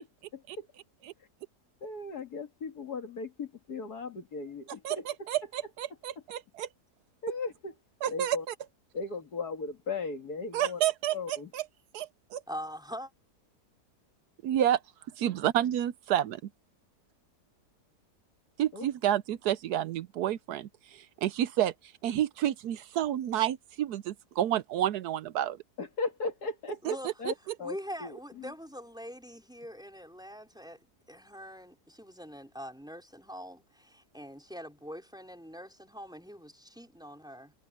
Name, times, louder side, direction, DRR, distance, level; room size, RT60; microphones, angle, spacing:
voice 1, 0.3-0.7 1.8-5.3 7.2-7.7 8.1-8.5 8.9-10.8 11.1-11.5 18.7-18.9 25.8-26.8 27.2-27.3 27.6-28.5, left 4 dB, 70° left, 2.6 m, -37 dB
voice 2, 5.3-6.7 8.0-8.4 10.5-11.6 11.9-12.4 14.4-14.8 15.2-16.4 18.6-21.7 22.0-25.6, right 11 dB, 80° right, 1.2 m, -29 dB
voice 3, 12.5-13.1 26.8-27.1 27.6-30.8 31.1-37.5, equal, ahead, 4.7 m, -43 dB
omnidirectional pair, 1.7 m